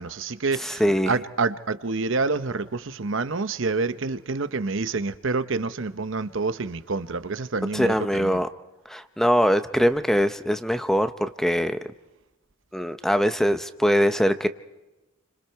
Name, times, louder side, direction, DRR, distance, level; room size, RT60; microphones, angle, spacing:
voice 1, 0.0-8.4, right 3 dB, 65° right, 0.8 m, -28 dB
voice 2, 0.6-1.2 7.7-8.5 8.9-11.8 12.7-14.5, equal, ahead, 0.7 m, -22 dB
30.0 x 25.5 x 4.6 m
head